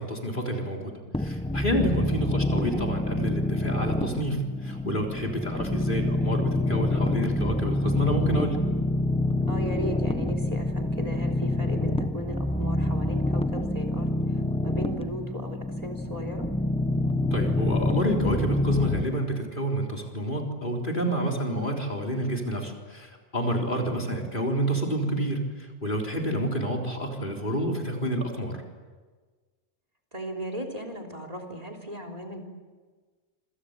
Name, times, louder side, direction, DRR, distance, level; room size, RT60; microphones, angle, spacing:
voice 1, 0.0-8.6 17.3-28.6, right 1 dB, 45° left, 1 dB, 3.9 m, -29 dB
sound 1, 1.1-19.0, left 1 dB, 5° left, 1.0 m, -27 dB
voice 2, 9.5-16.5 23.8-24.0 30.1-32.4, equal, 35° right, 5 dB, 3.5 m, -37 dB
27.0 x 25.5 x 8.1 m, 1.4 s
omnidirectional pair, 1.2 m